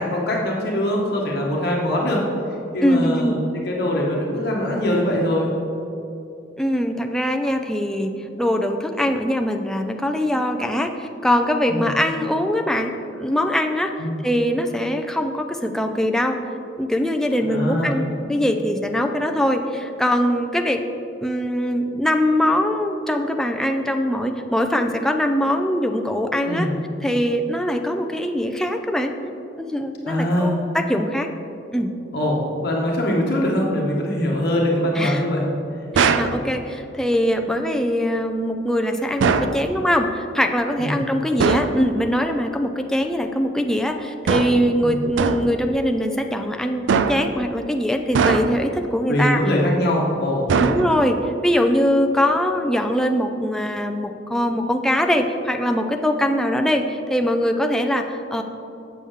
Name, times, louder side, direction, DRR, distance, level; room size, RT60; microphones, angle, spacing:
voice 1, 0.0-2.2 2.7-5.5 11.7-11.9 14.0-14.2 17.4-18.0 26.5-26.7 30.0-30.6 32.1-32.4 32.6-35.4 36.0-36.2 40.8-41.0 44.8-45.0 49.1-50.5, left 1 dB, 60° left, -2 dB, 1.0 m, -22 dB
voice 2, 2.8-3.4 6.6-8.1 8.4-13.9 14.2-16.4 16.8-20.8 21.2-26.7 27.0-29.1 29.6-31.3 31.7-31.9 35.0-35.2 35.9-49.4 50.6-51.2 51.4-58.4, equal, 5° left, 3 dB, 0.4 m, -22 dB
sound 1, 35.9-36.4 39.2-39.6 41.4-41.8 44.3-44.7 45.2-45.6 46.9-47.4 48.1-48.7 50.5-51.2, right 5 dB, 80° right, 0.4 m, -20 dB
7.8 x 6.8 x 3.6 m, 2.7 s
head